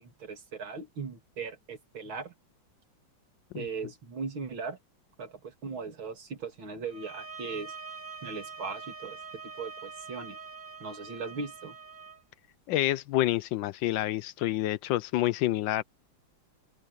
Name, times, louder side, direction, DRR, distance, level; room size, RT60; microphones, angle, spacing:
voice 1, 0.0-2.3 3.6-4.8 5.2-7.7 8.2-9.2 9.6-10.4 10.8-11.8, right 4 dB, 85° right, 3.5 m, -38 dB
sound 1, 6.9-12.2, right 5 dB, 5° right, 2.2 m, -44 dB
voice 2, 12.7-15.8, left 15 dB, 75° left, 1.2 m, -28 dB
open air
omnidirectional pair, 2.1 m